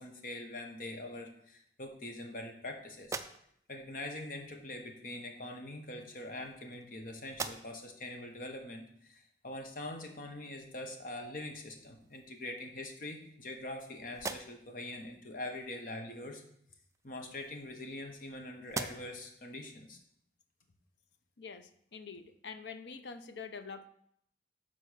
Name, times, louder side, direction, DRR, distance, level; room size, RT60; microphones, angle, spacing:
voice 1, 0.0-3.2 3.7-16.4 17.0-20.0, left 1 dB, 50° left, 3 dB, 1.1 m, -43 dB
sound 1, 3.0-3.8 4.9-5.1 6.0-6.9 7.3-8.0 8.5-8.6 11.2-11.4 11.8-12.5 13.1-13.8 14.1-14.8 16.8-18.3 18.6-19.3, right 4 dB, 15° right, 0.3 m, -44 dB
voice 2, 21.4-23.9, left 5 dB, 85° left, 10 dB, 0.6 m, -46 dB
6.6 x 4.3 x 6.3 m, 0.70 s
head